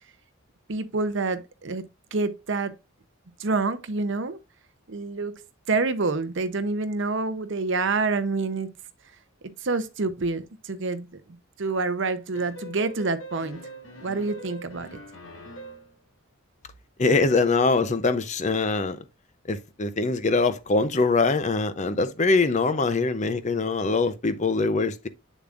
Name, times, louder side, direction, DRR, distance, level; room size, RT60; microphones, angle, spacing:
voice 1, 0.7-1.8 2.1-2.8 3.4-4.4 4.9-8.7 9.6-11.1 11.6-13.6 14.0-15.0, right 3 dB, 60° right, 0.7 m, -27 dB
sound 1, 12.3-16.0, right 1 dB, 65° left, 2.1 m, -42 dB
voice 2, 17.0-19.0 19.5-25.1, left 3 dB, 35° left, 0.6 m, -23 dB
7.3 x 6.9 x 2.5 m
head